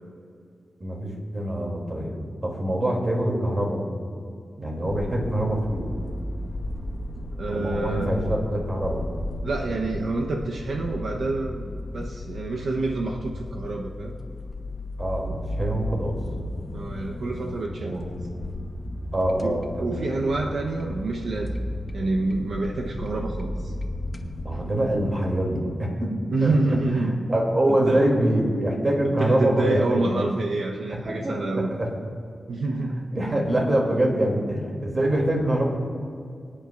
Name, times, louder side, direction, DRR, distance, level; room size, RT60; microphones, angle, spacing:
voice 1, 0.8-2.2 2.4-3.8 4.6-5.9 7.5-9.0 15.0-16.2 17.8-18.0 19.1-20.1 24.4-26.1 26.4-26.5 26.9-30.3 31.0-31.9 33.1-35.6, right 1 dB, 40° right, -1 dB, 3.0 m, -25 dB
sound 1, 4.9-24.4, left 1 dB, 35° left, 1.1 m, -34 dB
voice 2, 7.4-8.3 9.4-14.2 16.7-18.1 19.4-21.6 21.9-23.7 26.3-27.1 27.9-28.1 29.2-31.8 32.5-33.0, right 2 dB, 85° right, 0 dB, 1.0 m, -27 dB
25.5 x 8.9 x 2.6 m, 2.4 s
cardioid pair, 75°, 0 cm